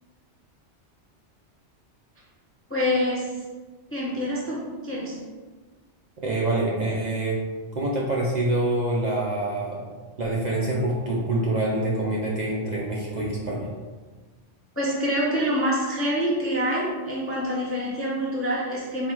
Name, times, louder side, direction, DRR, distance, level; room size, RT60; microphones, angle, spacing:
voice 1, 2.7-3.4 3.9-5.2 14.8-19.1, equal, 20° left, -5 dB, 0.4 m, -26 dB
voice 2, 6.2-7.4 7.8-9.8 10.2-13.7, right 1 dB, 50° right, -4 dB, 0.5 m, -26 dB
3.8 x 2.3 x 4.4 m, 1.4 s
omnidirectional pair, 1.2 m